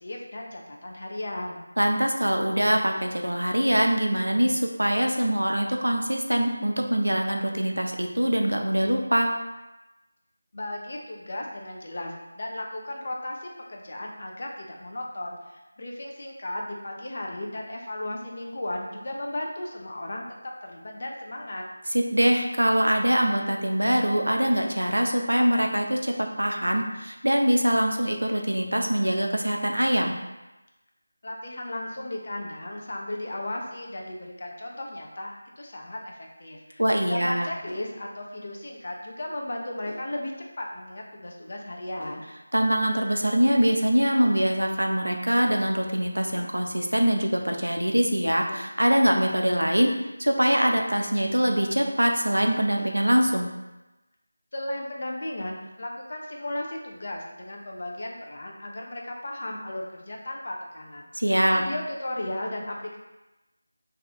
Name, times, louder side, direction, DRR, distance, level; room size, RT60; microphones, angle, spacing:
voice 1, 0.0-1.6 10.5-20.2 20.6-21.7 31.2-40.3 40.6-42.2 54.5-61.1 61.5-63.0, left 1 dB, 45° left, -1 dB, 0.5 m, -35 dB
voice 2, 1.8-9.3 21.9-30.1 36.8-37.5 42.5-49.9 50.2-53.5 61.1-61.6, equal, 90° right, 2 dB, 0.5 m, -23 dB
sound 1, 37.7-38.0 39.9-40.2 42.0-42.3 44.2-44.5 46.3-46.6 48.5-48.8 50.6-51.0 52.8-53.1, left 1 dB, 60° left, 1.2 m, -44 dB
2.7 x 2.3 x 4.1 m, 1.0 s
figure-of-eight pair, 165°, 0 cm